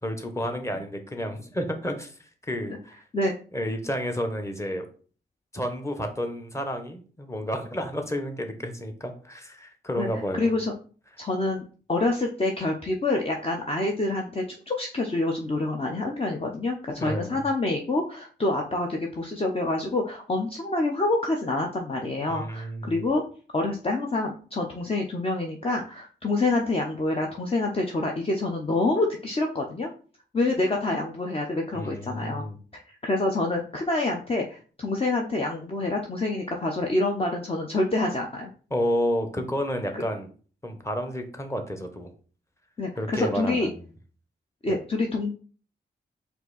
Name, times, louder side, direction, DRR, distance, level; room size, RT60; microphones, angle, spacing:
voice 1, 0.0-2.1 2.5-2.7 3.5-4.8 5.5-10.5 17.0-17.3 22.3-23.0 31.7-32.5 38.7-40.3 40.6-42.1 43.0-43.7 44.7-44.8, equal, 15° left, 5 dB, 1.1 m, -30 dB
voice 2, 9.9-10.7 11.2-11.6 11.9-23.2 23.5-29.9 30.3-32.4 32.7-38.5 39.9-40.0 42.8-43.7 44.6-45.3, left 2 dB, 30° left, 1 dB, 0.7 m, -27 dB
4.5 x 2.7 x 4.0 m, 0.40 s
cardioid pair, 55°, 19 cm